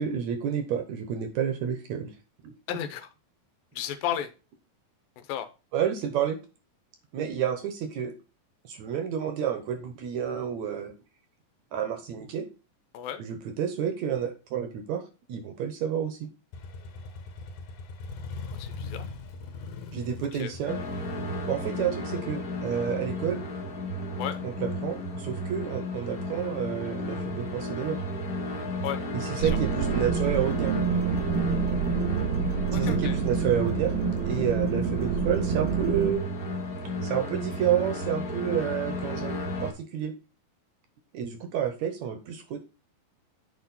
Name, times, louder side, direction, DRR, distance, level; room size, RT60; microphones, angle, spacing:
voice 1, 0.0-2.1 2.4-2.5 5.7-6.4 7.1-8.1 8.6-11.0 11.7-12.5 13.2-15.0 15.3-16.3 19.9-20.8 21.4-23.4 24.4-28.0 29.3-30.7 32.7-33.9 34.3-36.2 37.0-40.1 41.1-42.6, right 8 dB, 70° right, 7 dB, 1.9 m, -30 dB
voice 2, 2.7-3.1 3.8-4.3 5.2-5.5 12.9-13.2 18.5-19.0 20.3-20.5 24.2-24.4 28.8-29.0 29.4-29.5 32.7-33.2, left 10 dB, 80° left, 10 dB, 2.5 m, -33 dB
Motorcycle, 16.5-24.2, left 4 dB, 65° left, 2.4 m, -41 dB
sound 1, 20.6-39.7, left 1 dB, 50° left, 1.1 m, -33 dB
sound 2, 29.4-36.1, right 6 dB, 85° right, 2.9 m, -27 dB
8.6 x 5.0 x 4.1 m, 0.31 s
omnidirectional pair, 4.1 m